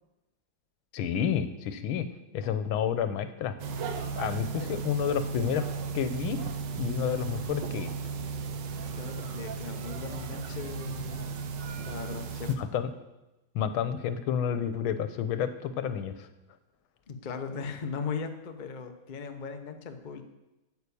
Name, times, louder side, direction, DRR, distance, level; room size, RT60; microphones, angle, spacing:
voice 1, 0.9-2.1 2.3-3.6 4.2-5.7 5.9-6.4 6.7-7.9 12.6-12.9 13.5-16.3, left 8 dB, 90° left, 11 dB, 1.7 m, -30 dB
sound 1, 3.6-12.6, right 5 dB, 65° right, 1.5 m, -35 dB
voice 2, 8.7-11.4 11.8-12.5 17.1-20.2, left 5 dB, 40° left, 6 dB, 0.7 m, -38 dB
9.4 x 8.2 x 6.9 m, 0.99 s
omnidirectional pair, 2.2 m